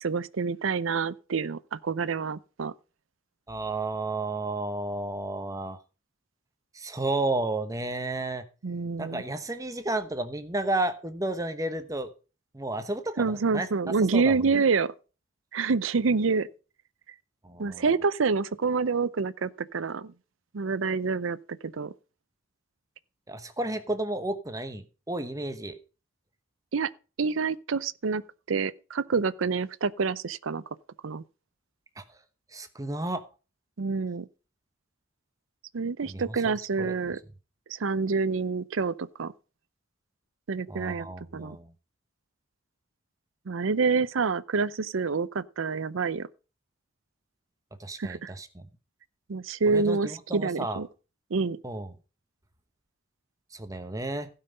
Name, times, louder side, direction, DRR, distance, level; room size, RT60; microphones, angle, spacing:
voice 1, 0.0-2.7 8.6-9.2 13.2-14.9 15.5-16.5 17.6-20.1 20.5-21.4 21.6-21.9 26.7-26.9 27.2-28.2 28.5-30.6 31.0-31.2 33.8-34.3 35.7-37.2 37.7-39.3 40.5-41.1 41.3-41.6 43.5-46.3 48.0-48.3 49.3-50.9 51.3-51.6, right 4 dB, 80° right, 0.6 m, -27 dB
voice 2, 3.5-5.8 6.7-8.4 9.0-12.1 12.5-13.7 14.1-14.4 17.4-17.8 23.3-25.8 32.0-32.1 32.5-33.2 36.1-36.9 40.7-41.7 47.8-48.7 49.6-50.8 51.6-51.9 53.5-54.3, right 2 dB, 15° right, 0.9 m, -32 dB
16.0 x 5.8 x 5.2 m
head